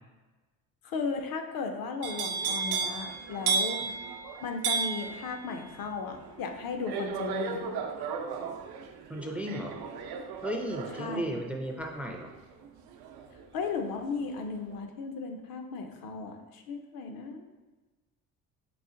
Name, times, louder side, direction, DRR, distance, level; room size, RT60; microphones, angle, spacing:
voice 1, 0.8-3.8 4.4-7.7 11.0-11.4 13.5-17.5, left 5 dB, 70° left, 5 dB, 0.6 m, -36 dB
sound 1, 2.0-14.0 14.3-14.8, right 5 dB, 85° right, 0.5 m, -34 dB
voice 2, 9.1-9.8 10.4-12.3, equal, 5° right, 2 dB, 0.3 m, -35 dB
4.2 x 2.5 x 3.7 m, 1.2 s
cardioid pair, 100°, 36 cm